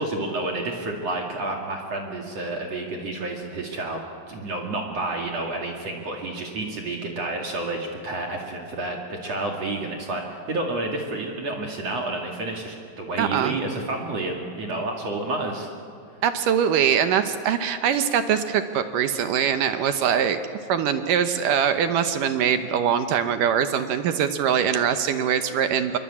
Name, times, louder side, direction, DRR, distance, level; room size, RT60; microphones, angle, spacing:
voice 1, 0.0-4.0 4.3-15.7, right 2 dB, 45° right, 1 dB, 2.9 m, -30 dB
voice 2, 13.2-13.6 16.2-20.4 20.7-26.0, right 8 dB, 70° right, 9 dB, 2.2 m, -22 dB
26.5 x 23.0 x 8.6 m, 2.4 s
omnidirectional pair, 4.7 m